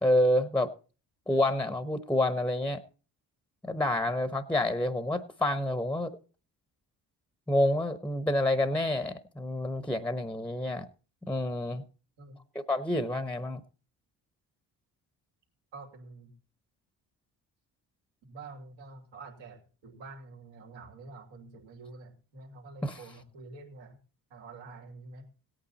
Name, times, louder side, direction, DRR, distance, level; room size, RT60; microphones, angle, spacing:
voice 1, 0.0-0.7 1.3-2.8 3.6-6.1 7.5-10.9 11.2-11.8 12.7-13.6 22.8-23.0, left 1 dB, 5° left, 1.0 m, -28 dB
voice 2, 15.7-16.3 18.3-24.0 24.3-25.3, right 3 dB, 75° right, 2.8 m, -47 dB
17.0 x 8.8 x 4.2 m
supercardioid pair, 65°, 45 cm